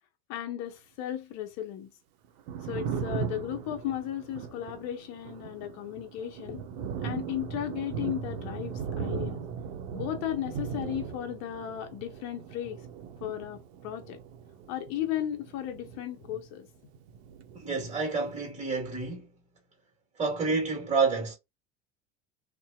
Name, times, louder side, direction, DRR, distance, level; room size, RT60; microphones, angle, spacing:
voice 1, 0.3-1.9 2.6-6.6 7.0-9.4 9.9-12.8 13.2-14.2 14.7-16.7, left 11 dB, 55° left, 0.6 m, -35 dB
Thunder, 2.2-16.7 16.9-18.2, right 7 dB, 65° right, 0.7 m, -38 dB
voice 2, 17.5-19.3 20.2-21.3, right 4 dB, 20° right, 1.3 m, -29 dB
2.6 x 2.1 x 2.2 m
hypercardioid pair, 75°, 33 cm